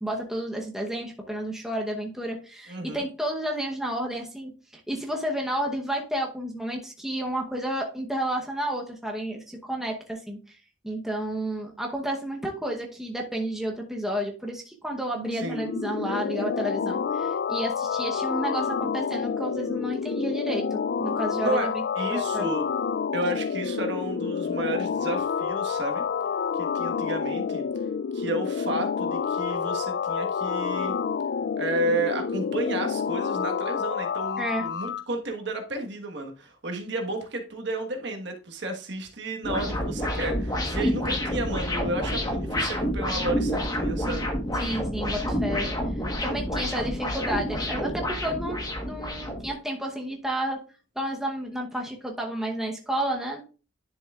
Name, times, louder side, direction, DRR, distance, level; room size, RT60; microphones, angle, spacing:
voice 1, 0.0-10.6 10.8-22.5 34.4-34.7 40.8-41.0 44.6-45.7 46.2-48.6 48.9-50.6 51.0-53.4, right 1 dB, ahead, 0.9 m, -31 dB
voice 2, 2.7-3.0 15.3-15.6 21.4-22.7 23.1-26.0 26.5-27.6 28.1-30.9 31.6-44.3, right 1 dB, 55° right, 1.4 m, -32 dB
sound 1, 15.1-35.0, left 6 dB, 50° left, 0.3 m, -29 dB
sound 2, 39.4-49.5, equal, 20° left, 1.3 m, -28 dB
10.5 x 6.9 x 2.4 m
head